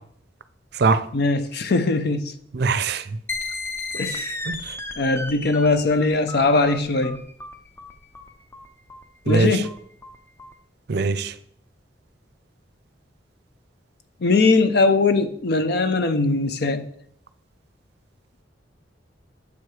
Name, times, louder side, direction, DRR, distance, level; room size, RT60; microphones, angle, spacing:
voice 1, 1.1-2.3 4.0-4.3 5.0-7.2 9.3-9.7 14.2-16.9, left 3 dB, 60° left, 0.6 m, -20 dB
voice 2, 2.5-3.0 4.5-4.6 9.3-9.6 10.9-11.3, right 4 dB, 60° right, 0.5 m, -21 dB
sound 1, 3.3-10.5, left 2 dB, 15° left, 0.5 m, -34 dB
7.0 x 4.7 x 4.8 m
head